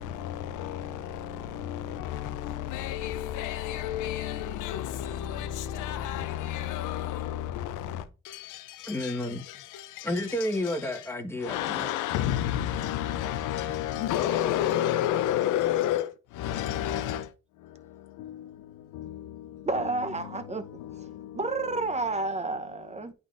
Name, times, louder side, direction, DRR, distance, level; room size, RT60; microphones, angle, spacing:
voice 1, 0.0-10.1 11.4-17.3 17.6-19.7 20.8-21.4, left 11 dB, 90° left, 0.6 m, -31 dB
voice 2, 8.9-9.4 10.0-12.0, left 1 dB, 10° left, 1.3 m, -31 dB
voice 3, 19.6-20.6 20.9-21.1 21.3-23.1, right 3 dB, 20° right, 0.8 m, -30 dB
10.5 x 3.7 x 2.5 m
cardioid pair, 90°, 30 cm